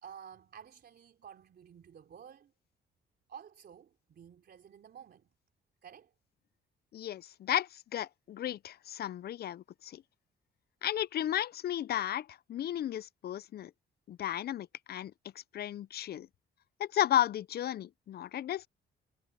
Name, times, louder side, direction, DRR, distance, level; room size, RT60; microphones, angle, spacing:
voice 1, 0.0-2.5 3.3-5.3 5.8-6.1, right 8 dB, 55° right, 3.5 m, -52 dB
voice 2, 6.9-10.0 10.8-13.7 14.1-15.1 15.5-16.3 16.8-18.7, left 11 dB, 55° left, 0.5 m, -34 dB
cardioid pair, 90°, 20 cm